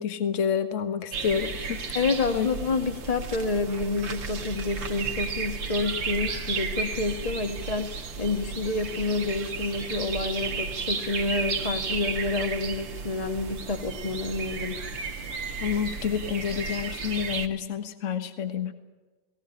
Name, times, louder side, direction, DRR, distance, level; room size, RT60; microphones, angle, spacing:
voice 1, 0.0-2.0 2.3-2.5 15.6-18.7, left 7 dB, 45° left, 9 dB, 1.6 m, -29 dB
sound 1, 1.1-17.5, right 5 dB, 85° right, 2.5 m, -33 dB
voice 2, 1.9-14.8, left 3 dB, 20° left, 8 dB, 1.5 m, -29 dB
19.0 x 18.0 x 9.9 m, 1.2 s
omnidirectional pair, 2.0 m